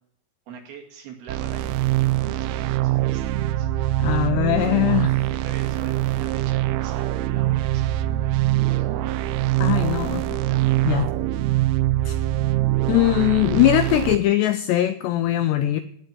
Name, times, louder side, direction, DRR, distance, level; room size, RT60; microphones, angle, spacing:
voice 1, 0.5-4.2 4.6-4.8 5.3-9.4 9.7-10.1 10.4-11.0, right 6 dB, 60° right, 4 dB, 3.6 m, -42 dB
sound 1, 1.3-14.2, right 15 dB, 90° right, 3.3 m, -23 dB
voice 2, 4.0-5.1 9.6-10.2 10.9-11.1 12.1-12.2 12.9-15.8, left 14 dB, 80° left, 11 dB, 2.5 m, -20 dB
18.5 x 6.6 x 9.4 m, 0.69 s
omnidirectional pair, 5.6 m